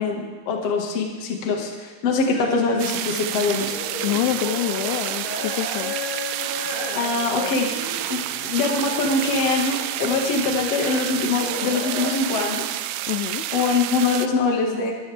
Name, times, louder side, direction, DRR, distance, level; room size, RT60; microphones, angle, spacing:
voice 1, 0.0-3.8 6.9-7.7 8.1-12.6 13.5-14.9, left 4 dB, 50° left, 1 dB, 2.0 m, -23 dB
sound 1, 2.3-12.1, left 2 dB, 30° left, 4.7 m, -34 dB
sound 2, 2.8-14.3, right 13 dB, 85° right, 2.4 m, -29 dB
voice 2, 4.0-5.9 13.1-13.5, left 14 dB, 85° left, 12 dB, 3.0 m, -26 dB
22.0 x 13.5 x 3.5 m, 1.4 s
omnidirectional pair, 5.4 m